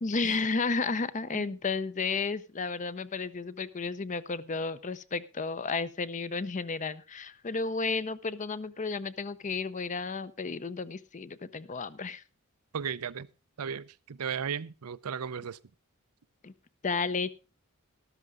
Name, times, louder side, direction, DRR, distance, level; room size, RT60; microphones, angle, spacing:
voice 1, 0.0-12.2 16.4-16.5 16.8-17.3, left 4 dB, 35° left, 15 dB, 0.6 m, -32 dB
voice 2, 12.7-13.3 13.6-15.6, right 7 dB, 90° right, 16 dB, 0.6 m, -35 dB
13.0 x 12.0 x 3.7 m, 0.30 s
head